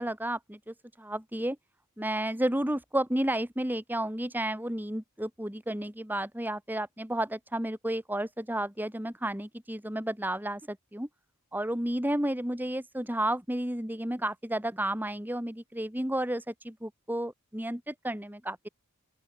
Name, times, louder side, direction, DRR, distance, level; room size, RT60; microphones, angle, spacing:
voice 1, 0.0-1.6 2.0-11.1 11.5-18.7, right 1 dB, 10° right, 2.0 m, -32 dB
open air
head